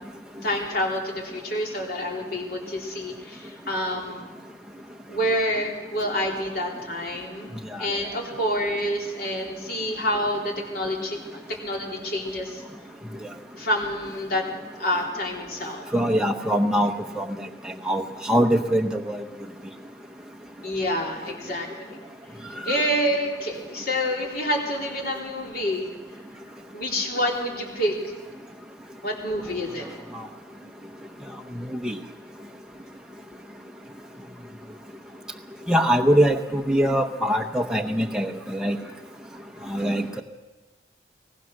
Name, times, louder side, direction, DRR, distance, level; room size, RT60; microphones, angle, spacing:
voice 1, 0.4-4.3 5.1-12.6 13.6-14.4 14.8-15.9 20.6-22.0 22.6-25.9 26.7-28.1 29.0-29.9 30.6-30.7, equal, 50° left, 0 dB, 3.6 m, -28 dB
voice 2, 15.9-16.9 17.2-17.3 17.9-18.0 18.3-19.2 22.7-22.8 31.8-31.9 35.7-38.8 39.7-40.2, equal, 5° right, 1 dB, 0.9 m, -22 dB
22.0 x 18.5 x 6.5 m, 1.2 s
head